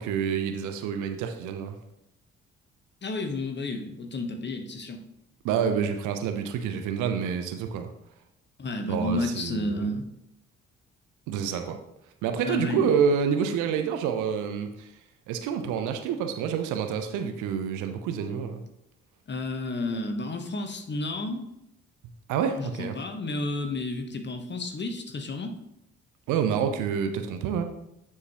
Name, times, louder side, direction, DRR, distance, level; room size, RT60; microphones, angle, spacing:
voice 1, 0.0-1.8 5.4-7.9 8.9-9.9 11.3-11.8 12.2-14.9 15.3-18.6 22.3-23.0 26.3-27.6, right 7 dB, 65° right, 6 dB, 0.8 m, -28 dB
voice 2, 3.0-5.0 8.6-10.0 12.4-12.9 19.3-21.5 22.6-25.6, left 2 dB, 30° left, 5 dB, 1.1 m, -31 dB
9.6 x 4.7 x 3.0 m, 0.83 s
figure-of-eight pair, 40°, 34 cm